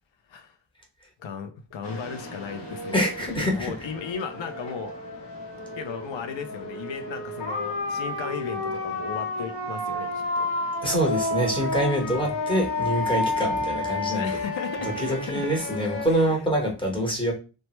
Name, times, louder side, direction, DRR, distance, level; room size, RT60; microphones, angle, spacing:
voice 1, 1.2-2.9 3.4-5.0 5.8-10.5 12.1-12.4 14.2-15.5 16.1-16.3, left 6 dB, 85° left, 0.5 m, -36 dB
sound 1, 1.8-16.1, left 2 dB, 65° left, 0.9 m, -31 dB
voice 2, 2.9-3.7 10.8-14.4 14.8-17.3, equal, 10° left, 0.9 m, -25 dB
3.1 x 2.1 x 2.9 m
wide cardioid pair, 100°, 44 cm